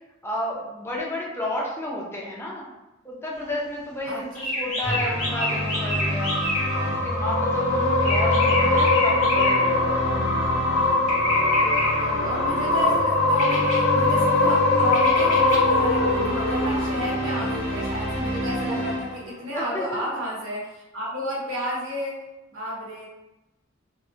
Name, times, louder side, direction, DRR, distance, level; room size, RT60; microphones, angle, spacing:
voice 1, 0.2-2.6 3.0-6.3 6.9-10.4 19.5-20.1, left 1 dB, 10° left, -3 dB, 0.4 m, -32 dB
sound 1, 4.4-6.9 8.0-9.9 11.1-12.2 13.4-13.9 14.9-15.6, left 1 dB, 40° left, 0.9 m, -28 dB
sound 2, 4.8-19.6, equal, 35° right, 1.2 m, -29 dB
sound 3, 5.2-17.7, left 3 dB, 75° left, 0.4 m, -23 dB
voice 2, 11.6-20.7 20.9-22.2 22.5-23.1, equal, 80° right, -5 dB, 0.9 m, -32 dB
2.6 x 2.0 x 2.6 m, 0.99 s
head